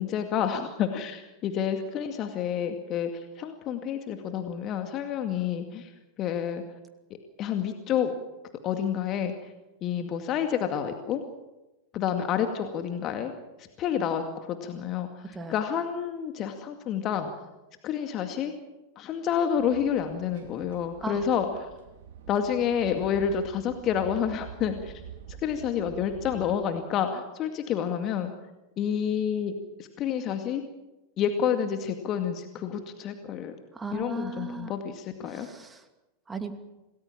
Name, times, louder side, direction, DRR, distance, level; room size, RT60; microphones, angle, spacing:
voice 1, 0.0-5.9 6.2-6.6 7.4-8.1 8.6-9.5 9.8-11.2 11.9-13.3 13.6-17.3 17.8-18.5 19.0-21.7 22.3-25.0 25.4-28.3 28.8-29.5 29.8-30.6 31.2-33.5 33.9-35.5, left 8 dB, 35° left, 6 dB, 2.2 m, -29 dB
sound 1, 19.5-26.6, right 8 dB, 55° right, 3.2 m, -46 dB
voice 2, 33.7-34.7 35.3-35.9 36.3-36.5, right 3 dB, 15° right, 7 dB, 2.6 m, -37 dB
27.0 x 19.5 x 7.4 m, 1.0 s
figure-of-eight pair, 90°, 0 cm